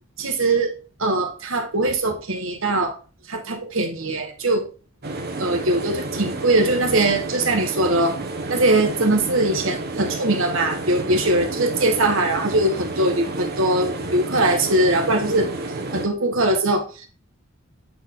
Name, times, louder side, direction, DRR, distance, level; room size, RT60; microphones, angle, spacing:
voice 1, 0.2-0.7 1.0-2.9 3.3-4.7 5.4-8.2 8.5-15.5 15.9-17.1, right 2 dB, 70° right, 4 dB, 1.6 m, -21 dB
sound 1, 5.0-16.1, right 2 dB, 50° right, 1.1 m, -30 dB
9.1 x 3.8 x 3.9 m, 0.34 s
head